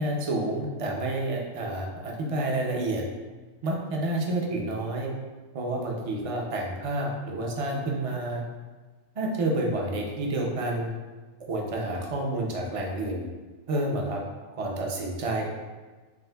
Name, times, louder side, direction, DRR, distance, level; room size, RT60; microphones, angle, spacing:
voice 1, 0.0-3.0 3.6-5.1 5.5-8.4 9.2-10.9 11.5-13.3 13.7-14.2 14.6-15.6, right 2 dB, 45° right, -1 dB, 0.4 m, -29 dB
6.2 x 2.5 x 2.3 m, 1.3 s
omnidirectional pair, 1.3 m